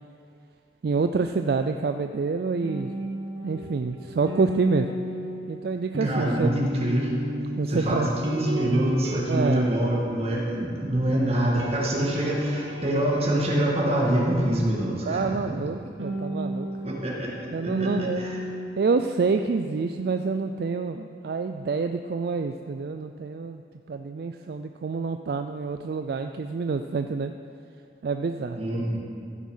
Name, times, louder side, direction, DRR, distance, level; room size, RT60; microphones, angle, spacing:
voice 1, 0.8-2.9 3.4-4.9 5.5-6.5 7.6-8.1 9.3-9.7 15.1-16.7 17.5-18.2 18.8-23.6 23.9-27.3 28.0-28.6, right 4 dB, 60° right, 7 dB, 0.3 m, -27 dB
sound 1, 2.6-11.1 11.4-14.8 16.0-18.7, equal, 85° right, 1.2 m, -34 dB
voice 2, 6.0-7.1 7.7-15.5 16.8-17.3 17.6-18.4 28.5-29.0, right 1 dB, 35° right, -3 dB, 2.1 m, -25 dB
14.5 x 6.1 x 5.6 m, 2.3 s
head